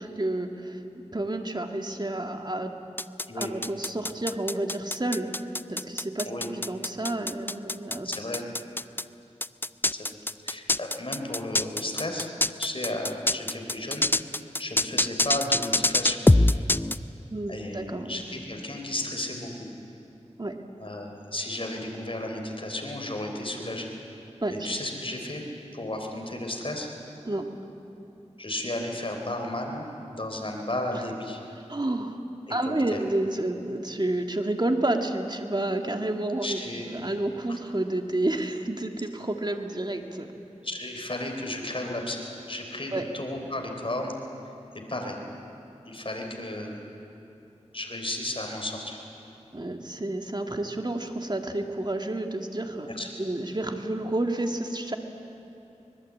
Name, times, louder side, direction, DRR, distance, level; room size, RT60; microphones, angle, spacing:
voice 1, 0.0-2.7 3.3-5.4 5.7-8.1 17.3-18.2 20.4-20.6 24.4-24.7 27.3-27.5 30.9-31.0 31.7-32.2 32.5-40.3 42.9-43.1 49.5-55.0, right 1 dB, 35° right, 5 dB, 2.0 m, -30 dB
sound 1, 3.0-9.0 9.4-17.0, left 2 dB, 15° left, 0.5 m, -24 dB
voice 2, 8.0-8.4 10.4-12.3 12.6-14.1 14.6-16.3 17.5-19.5 20.8-23.9 24.5-25.4 25.7-26.9 28.4-31.4 32.5-33.0 36.4-36.9 40.6-44.1 44.9-45.2 45.9-46.8 47.7-49.0 52.9-53.1, left 1 dB, 45° left, 2 dB, 3.7 m, -33 dB
24.5 x 20.5 x 8.5 m, 2.8 s
wide cardioid pair, 45°, 12 cm